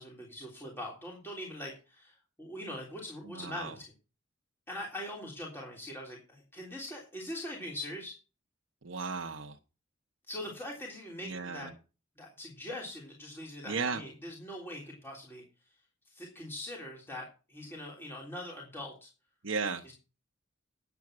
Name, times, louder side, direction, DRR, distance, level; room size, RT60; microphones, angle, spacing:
voice 1, 0.0-3.9 4.7-8.2 10.3-11.7 12.2-15.4 16.1-19.1 19.8-19.9, left 1 dB, 10° left, 3.3 m, -42 dB
voice 2, 3.3-3.7 8.8-9.6 11.2-11.7 13.7-14.0 19.4-19.8, right 4 dB, 75° right, 1.0 m, -35 dB
10.5 x 8.2 x 6.1 m
head